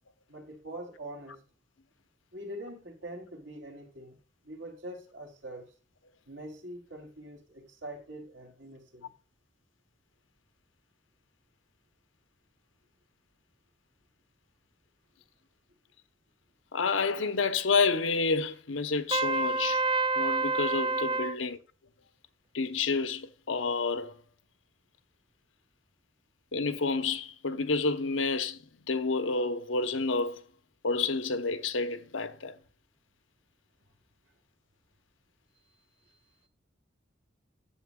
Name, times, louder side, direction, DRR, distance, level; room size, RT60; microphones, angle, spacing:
voice 1, 0.3-1.4 2.3-4.2 4.4-5.7 6.3-9.1, right 1 dB, 75° right, 2.9 m, -44 dB
voice 2, 16.7-19.8 20.1-21.6 22.5-24.1 26.5-30.4 30.8-32.5, left 4 dB, 85° left, 0.9 m, -29 dB
Trumpet, 19.1-21.4, right 3 dB, 25° right, 0.4 m, -28 dB
10.5 x 8.1 x 2.3 m
head